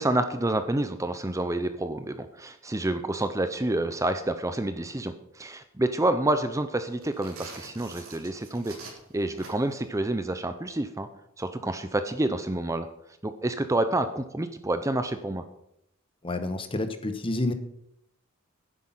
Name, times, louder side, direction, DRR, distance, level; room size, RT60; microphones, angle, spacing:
voice 1, 0.0-8.7 9.1-11.1 11.4-12.9 13.2-15.4, right 1 dB, 15° right, 10 dB, 0.6 m, -28 dB
sound 1, 6.9-9.8, right 3 dB, 70° right, 4.7 m, -45 dB
voice 2, 16.2-17.5, left 2 dB, 25° left, 9 dB, 1.1 m, -29 dB
11.0 x 10.0 x 5.7 m, 0.79 s
head